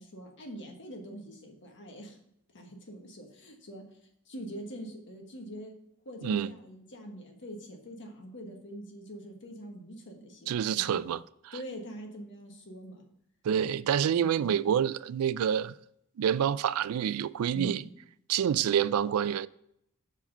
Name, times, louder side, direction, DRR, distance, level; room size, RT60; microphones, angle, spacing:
voice 1, 0.0-2.2 2.5-3.8 4.2-5.7 6.0-11.0 11.5-13.0 17.5-17.9, equal, 55° left, 1.2 m, -44 dB
voice 2, 6.2-6.5 10.5-11.2 11.5-11.6 13.4-15.7 16.2-17.8 18.3-19.5, right 9 dB, 70° right, 0.3 m, -27 dB
5.8 x 4.8 x 5.3 m
head